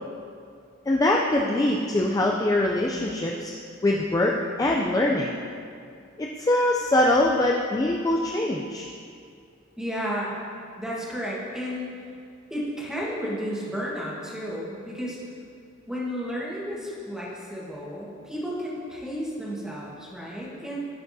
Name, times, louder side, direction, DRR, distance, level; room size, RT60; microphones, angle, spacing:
voice 1, 0.9-3.5 3.8-5.3 6.2-8.9, left 1 dB, 20° left, -1 dB, 0.4 m, -23 dB
voice 2, 9.8-10.3 10.8-11.9 12.5-15.2 15.9-20.9, equal, 5° right, -6 dB, 1.4 m, -32 dB
13.0 x 5.8 x 2.7 m, 2.4 s
head